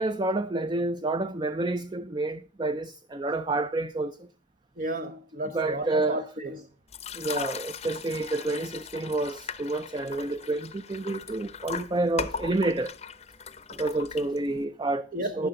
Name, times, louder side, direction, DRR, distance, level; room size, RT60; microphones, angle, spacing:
voice 1, 0.0-4.2 5.5-6.2 7.1-12.9 13.7-15.0 15.4-15.5, right 2 dB, 25° right, 0.5 m, -29 dB
voice 2, 4.8-6.7 15.1-15.5, right 1 dB, 50° right, 0.8 m, -33 dB
sound 1, 6.9-14.6, left 6 dB, 35° left, 0.7 m, -38 dB
12.5 x 9.9 x 3.8 m
head